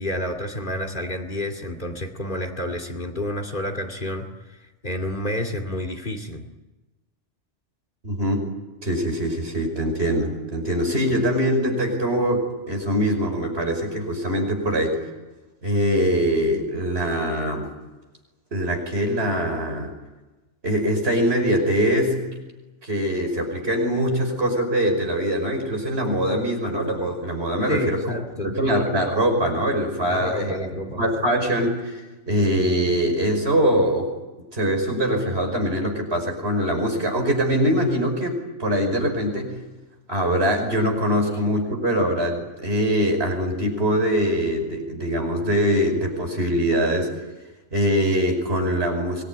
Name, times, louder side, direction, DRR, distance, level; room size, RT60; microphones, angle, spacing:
voice 1, 0.0-6.4 27.7-28.6 30.1-31.0, left 1 dB, 45° left, 6 dB, 2.6 m, -30 dB
voice 2, 8.0-8.4 8.8-15.0 15.6-17.7 18.5-19.9 20.6-22.2 22.8-28.1 28.4-30.6 31.0-34.1 34.5-39.5 40.1-47.1 47.7-49.2, equal, 60° right, 3 dB, 5.9 m, -23 dB
25.0 x 20.5 x 9.9 m, 1.1 s
omnidirectional pair, 1.2 m